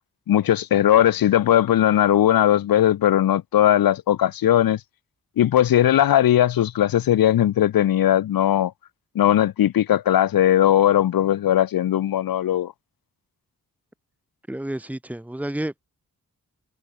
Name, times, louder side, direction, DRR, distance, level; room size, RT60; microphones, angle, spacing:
voice 1, 0.3-4.8 5.4-8.7 9.1-12.7, left 11 dB, 80° left, 0.7 m, -18 dB
voice 2, 14.5-15.8, right 1 dB, 5° right, 1.5 m, -30 dB
wide cardioid pair, 85°, 35 cm